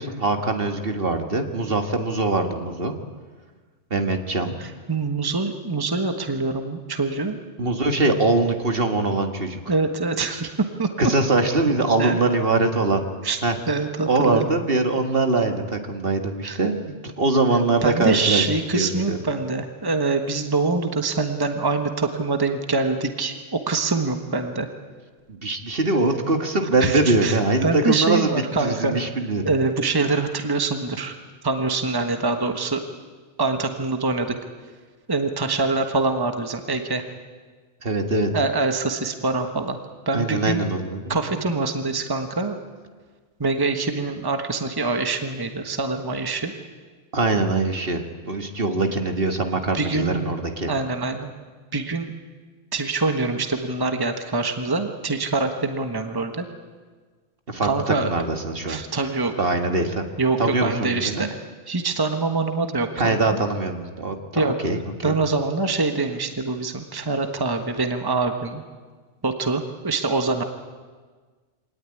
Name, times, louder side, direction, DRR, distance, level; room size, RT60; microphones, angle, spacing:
voice 1, 0.0-2.9 3.9-4.6 7.6-9.6 11.0-13.0 13.4-13.6 14.1-18.5 18.7-19.2 25.3-29.5 37.8-38.3 40.1-41.4 47.1-50.7 57.5-58.8 59.4-60.1 60.4-61.3 63.0-65.1, right 2 dB, 50° right, 5 dB, 1.9 m, -23 dB
voice 2, 4.6-7.4 9.7-10.9 12.0-12.2 13.2-13.4 13.7-14.5 16.4-16.6 17.8-24.7 26.8-29.0 29.4-31.1 31.4-32.8 33.4-34.3 35.1-37.0 38.3-39.8 40.1-40.6 41.1-42.6 43.4-46.5 49.7-50.3 50.6-51.3 51.7-52.1 52.7-56.5 57.6-58.1 58.7-59.3 60.2-61.3 61.7-63.4 64.3-64.5 65.0-68.6 69.2-70.4, right 3 dB, 20° right, 6 dB, 1.4 m, -24 dB
24.5 x 18.5 x 9.8 m, 1.5 s
omnidirectional pair, 1.2 m